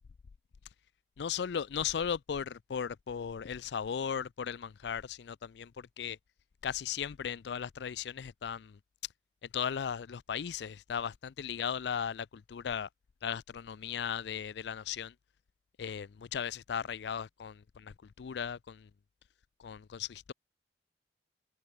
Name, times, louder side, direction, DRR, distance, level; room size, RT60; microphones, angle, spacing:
voice 1, 1.2-6.2 6.6-8.8 9.5-12.9 13.2-15.1 15.8-18.9 19.6-20.3, left 7 dB, 75° left, 0.4 m, -37 dB
head